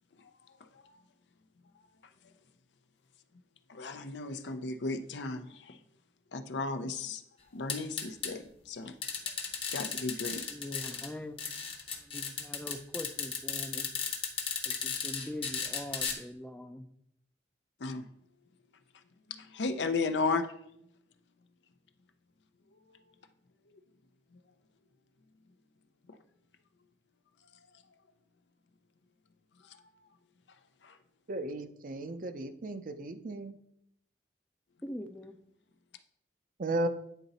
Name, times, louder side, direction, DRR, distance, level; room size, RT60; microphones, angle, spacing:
voice 1, 3.7-5.8 6.3-7.2 7.5-9.0 9.7-10.5 17.8-18.0 19.5-20.5 30.8-30.9, left 3 dB, 80° left, 9 dB, 0.6 m, -34 dB
sound 1, 7.7-8.3 9.0-11.1 11.4-16.1, left 6 dB, 30° left, 0.9 m, -35 dB
voice 2, 10.5-11.6 11.9-13.9 14.7-16.9 34.8-35.4, left 1 dB, 10° left, 8 dB, 0.4 m, -42 dB
voice 3, 31.3-33.6 36.6-36.9, right 2 dB, 50° right, 9 dB, 0.5 m, -35 dB
9.1 x 3.9 x 4.1 m, 0.74 s
head